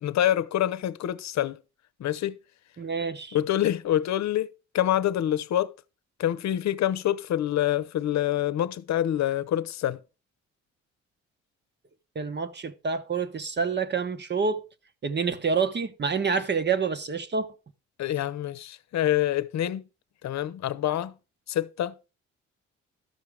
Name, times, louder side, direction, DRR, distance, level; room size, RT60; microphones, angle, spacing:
voice 1, 0.0-1.6 2.0-2.4 3.3-4.5 4.7-5.7 6.2-10.0 18.0-19.8 20.2-21.1 21.5-22.0, left 12 dB, 65° left, 0.8 m, -26 dB
voice 2, 2.8-3.4 12.1-14.6 15.0-17.5, right 5 dB, 35° right, 1.1 m, -27 dB
13.0 x 5.8 x 4.9 m
cardioid pair, 90°, 30 cm